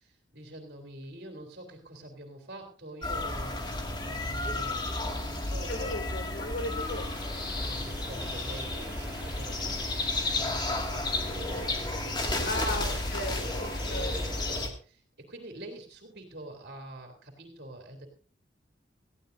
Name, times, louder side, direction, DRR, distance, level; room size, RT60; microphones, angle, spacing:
voice 1, 0.0-6.0 7.5-13.0 13.9-18.1, right 1 dB, 55° right, 2 dB, 3.2 m, -46 dB
sound 1, 3.0-14.7, left 2 dB, 20° left, 2.2 m, -32 dB
voice 2, 5.6-7.1 12.2-14.2, left 1 dB, 65° left, 2 dB, 3.0 m, -36 dB
sound 2, 6.8-14.5, equal, 5° right, 6.8 m, -46 dB
19.0 x 15.0 x 2.7 m, 0.41 s
head